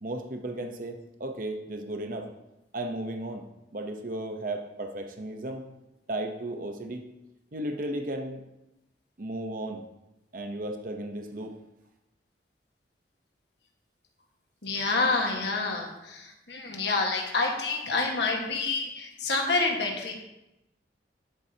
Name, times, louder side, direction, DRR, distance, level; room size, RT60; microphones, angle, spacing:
voice 1, 0.0-2.3 2.7-5.6 6.1-7.0 7.5-8.4 9.2-9.8 10.3-11.6, right 1 dB, 50° right, 4 dB, 0.8 m, -35 dB
voice 2, 14.6-20.1, left 3 dB, 70° left, 1 dB, 1.5 m, -28 dB
10.0 x 7.6 x 2.8 m, 0.91 s
head